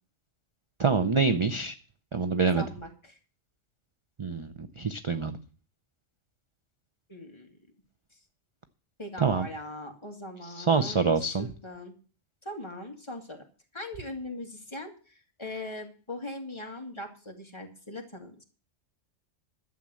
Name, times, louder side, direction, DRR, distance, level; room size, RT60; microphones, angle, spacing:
voice 1, 0.8-1.7 2.1-2.6 4.2-5.4 9.2-9.5 10.5-11.5, right 4 dB, 35° right, 9 dB, 0.6 m, -26 dB
voice 2, 2.4-3.2 7.1-7.6 9.0-11.9 12.4-13.4 13.7-18.4, left 1 dB, 25° left, 2 dB, 2.2 m, -40 dB
12.0 x 7.4 x 7.6 m, 0.37 s
omnidirectional pair, 1.3 m